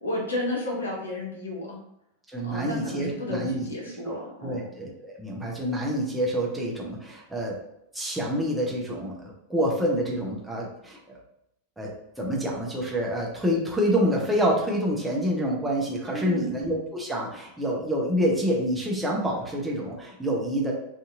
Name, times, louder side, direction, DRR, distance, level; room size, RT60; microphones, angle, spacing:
voice 1, 0.0-1.8 2.4-4.6 16.1-16.5, left 1 dB, 70° left, -3 dB, 0.9 m, -32 dB
voice 2, 2.3-3.7 4.1-7.5 7.9-11.2 11.8-11.9 12.2-20.7, equal, 5° right, -3 dB, 0.6 m, -27 dB
2.7 x 2.5 x 2.4 m, 0.79 s
figure-of-eight pair, 90°, 0 cm